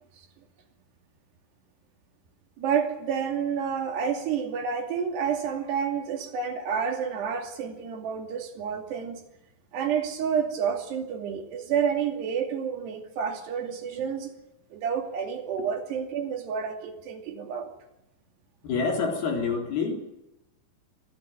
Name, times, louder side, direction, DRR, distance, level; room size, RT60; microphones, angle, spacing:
voice 1, 2.6-9.2 9.7-14.3 14.7-17.7, right 7 dB, 85° right, 4 dB, 4.8 m, -29 dB
voice 2, 18.6-20.0, left 5 dB, 70° left, 3 dB, 5.6 m, -27 dB
25.0 x 16.0 x 9.5 m, 0.91 s
omnidirectional pair, 4.7 m